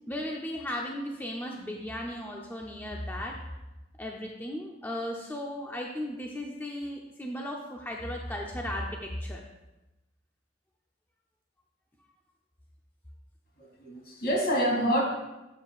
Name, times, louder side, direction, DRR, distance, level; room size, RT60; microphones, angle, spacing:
voice 1, 0.1-3.4 4.0-9.4, left 1 dB, 10° left, -1 dB, 0.7 m, -36 dB
voice 2, 13.6-15.0, equal, 60° left, -2 dB, 2.8 m, -27 dB
12.5 x 7.4 x 2.4 m, 1.0 s
head